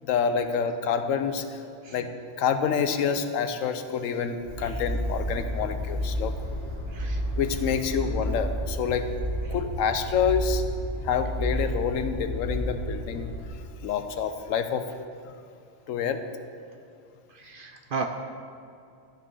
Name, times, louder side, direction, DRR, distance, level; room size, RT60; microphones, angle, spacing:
voice 1, 0.0-1.6 1.9-6.4 7.4-9.1 9.5-10.6 11.0-13.3 13.8-14.9 15.3-15.4 15.9-16.2, left 6 dB, 90° left, 9 dB, 1.0 m, -27 dB
sound 1, 4.4-13.5, equal, 35° right, 2.0 m, -31 dB
voice 2, 17.3-18.1, right 5 dB, 60° right, 5 dB, 0.6 m, -35 dB
12.5 x 5.3 x 5.4 m, 2.4 s
omnidirectional pair, 1.3 m